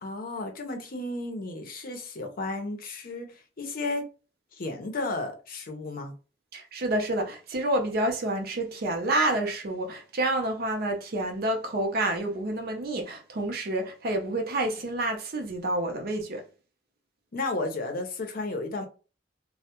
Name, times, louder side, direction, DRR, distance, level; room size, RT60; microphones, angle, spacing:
voice 1, 0.0-4.0 4.5-6.1 17.3-18.8, left 2 dB, 55° left, 0.6 m, -33 dB
voice 2, 6.5-16.4, right 1 dB, 55° right, 0.5 m, -28 dB
2.1 x 2.0 x 2.8 m
head